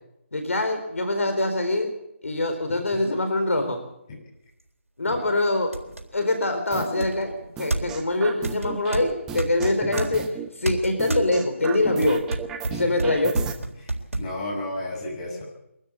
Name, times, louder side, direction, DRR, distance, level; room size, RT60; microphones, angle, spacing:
voice 1, 0.3-2.0 2.2-3.8 5.0-5.8 6.1-12.3 12.7-13.4, left 2 dB, 80° left, 6 dB, 4.2 m, -24 dB
sound 1, 4.6-4.7 5.2-5.3 5.7-6.1 7.0-8.1 8.4-10.1 10.7-11.3 11.8-14.3, right 2 dB, 90° right, 3.8 m, -29 dB
sound 2, 6.7-7.1 7.6-9.0 9.3-10.5 11.0-13.5, right 7 dB, 10° right, 0.9 m, -34 dB
voice 2, 13.8-15.4, left 1 dB, 25° left, -1 dB, 7.3 m, -33 dB
23.5 x 13.0 x 8.5 m, 0.83 s
figure-of-eight pair, 160°, 7 cm